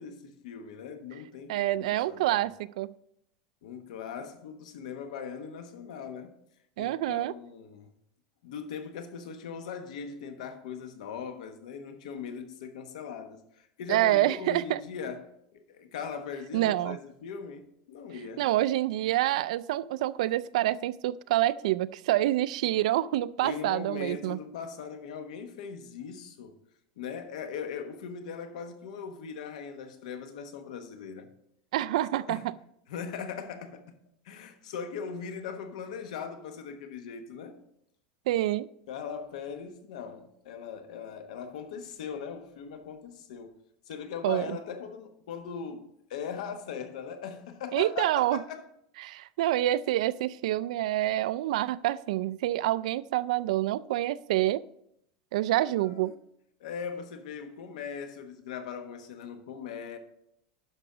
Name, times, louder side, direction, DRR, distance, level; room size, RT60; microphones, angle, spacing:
voice 1, 0.0-2.4 3.6-6.3 6.8-7.9 8.4-18.4 23.4-26.5 27.0-31.3 32.1-32.5 32.9-33.9 34.2-37.6 38.9-43.5 43.9-48.6 55.5-56.1 56.6-60.0, left 6 dB, 85° left, 1.2 m, -40 dB
voice 2, 1.5-2.9 6.8-7.3 13.9-14.8 16.5-17.0 18.4-24.4 31.7-32.5 38.3-38.7 44.2-44.6 47.7-48.4 49.0-54.6 55.3-56.1, right 14 dB, 75° right, 0.3 m, -27 dB
11.0 x 6.0 x 3.8 m
supercardioid pair, 175°, 4 cm